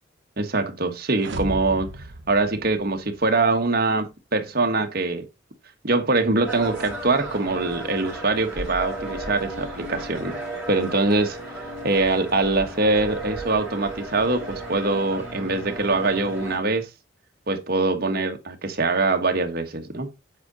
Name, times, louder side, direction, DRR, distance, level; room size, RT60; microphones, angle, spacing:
voice 1, 0.4-1.9 2.3-5.2 5.8-10.4 10.7-11.4 11.8-16.9 17.5-20.1, right 3 dB, 50° right, 1.4 m, -23 dB
sound 1, 1.2-3.3, right 1 dB, 65° right, 1.1 m, -35 dB
sound 2, 6.4-16.6, right 1 dB, 10° right, 4.4 m, -35 dB
8.2 x 5.0 x 4.0 m
head